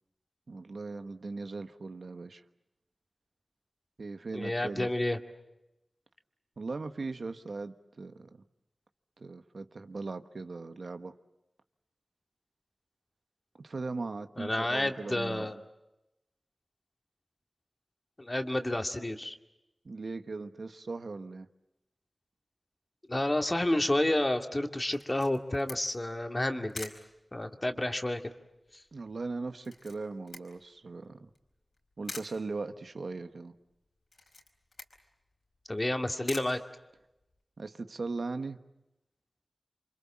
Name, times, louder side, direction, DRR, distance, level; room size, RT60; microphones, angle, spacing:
voice 1, 0.5-2.4 4.0-4.9 6.6-8.4 9.2-11.2 13.6-15.5 19.8-21.5 28.9-31.3 32.0-33.5 37.6-38.6, right 3 dB, 75° right, 9 dB, 1.2 m, -39 dB
voice 2, 4.3-5.2 14.4-15.6 18.2-19.4 23.1-26.9 27.3-28.3 35.7-36.6, left 1 dB, 30° left, 5 dB, 2.3 m, -30 dB
Camera, 24.9-37.4, left 2 dB, 75° left, 4.4 m, -49 dB
28.0 x 25.5 x 7.4 m, 0.93 s
wide cardioid pair, 55°, 0 cm